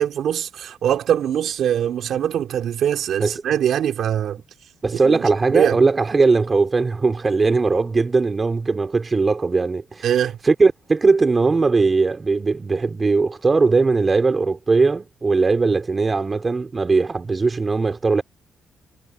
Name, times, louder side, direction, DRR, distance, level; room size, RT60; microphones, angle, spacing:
voice 1, 0.0-4.4 5.0-5.2 5.5-5.8 10.0-10.4, right 10 dB, 70° right, 3.2 m, -22 dB
voice 2, 4.8-10.1 10.4-18.2, right 4 dB, 30° right, 4.2 m, -19 dB
cardioid pair, 90°, 0 cm